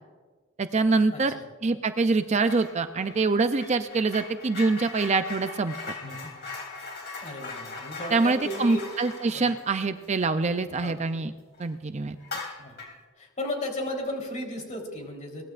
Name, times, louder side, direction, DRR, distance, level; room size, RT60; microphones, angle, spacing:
voice 1, 0.6-1.4 1.6-5.8 8.1-11.3 11.6-12.2, right 3 dB, 35° right, 9 dB, 0.5 m, -25 dB
voice 2, 1.1-1.4 6.0-6.2 6.8-6.9 7.2-8.9 9.3-9.5 10.8-10.9 12.6-12.8 13.2-15.4, left 1 dB, 35° left, 1 dB, 3.7 m, -35 dB
sound 1, 2.4-2.7 3.0-11.2 11.5-11.7 12.2-13.0, left 3 dB, 55° left, 3.4 m, -40 dB
23.0 x 18.5 x 2.5 m, 1.4 s
head